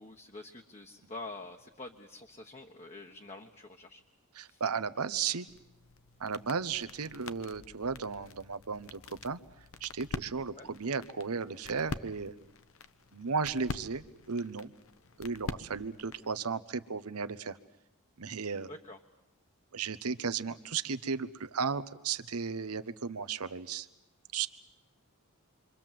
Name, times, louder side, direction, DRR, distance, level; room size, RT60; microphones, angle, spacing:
voice 1, 0.0-4.0 4.5-4.6 10.6-10.7 18.7-19.0, left 2 dB, 30° left, 2 dB, 1.3 m, -47 dB
voice 2, 4.3-5.5 6.2-9.4 9.8-12.3 13.1-14.7 15.2-17.6 18.2-18.7 19.7-23.9 24.3-24.5, right 5 dB, 85° right, 13 dB, 0.9 m, -35 dB
sound 1, 5.5-16.3, left 3 dB, 65° left, 1.0 m, -45 dB
28.0 x 24.5 x 7.6 m, 0.91 s
head